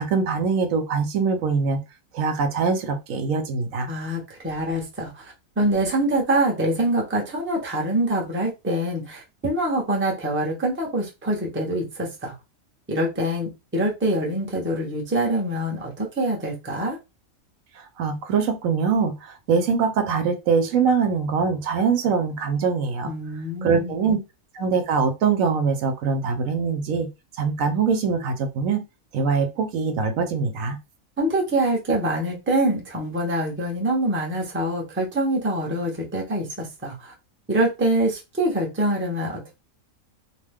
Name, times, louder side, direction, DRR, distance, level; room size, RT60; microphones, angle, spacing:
voice 1, 0.0-1.8 2.1-3.9 17.8-23.1 23.6-24.2 24.5-28.8 29.1-30.8, right 5 dB, 75° right, 1.0 m, -23 dB
voice 2, 3.9-12.3 12.9-17.0 23.0-23.9 31.2-37.1 37.5-39.6, right 1 dB, 10° right, 0.6 m, -25 dB
2.7 x 2.1 x 3.4 m
omnidirectional pair, 1.4 m